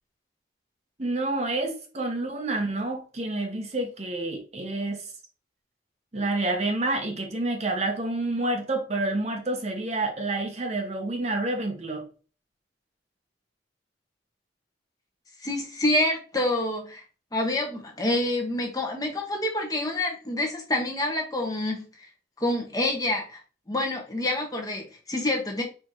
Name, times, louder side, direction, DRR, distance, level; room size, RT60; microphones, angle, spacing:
voice 1, 1.0-5.1 6.1-12.1, right 2 dB, 35° right, 0.8 m, -28 dB
voice 2, 15.4-17.0 17.3-22.1 22.4-23.4 23.7-25.6, left 1 dB, 20° left, 1.0 m, -27 dB
4.5 x 3.5 x 3.0 m
head